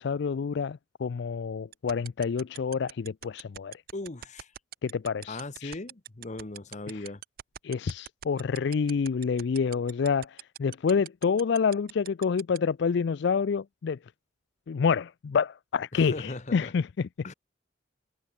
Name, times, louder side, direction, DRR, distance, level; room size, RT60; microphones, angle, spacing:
voice 1, 0.0-3.7 4.8-5.8 6.9-7.0 7.6-14.0 14.7-17.1, left 5 dB, 65° left, 0.4 m, -28 dB
sound 1, 1.7-12.6, right 12 dB, 50° right, 0.4 m, -41 dB
voice 2, 3.9-4.5 5.3-7.2 15.9-16.7 17.2-17.3, left 2 dB, 40° left, 1.0 m, -38 dB
head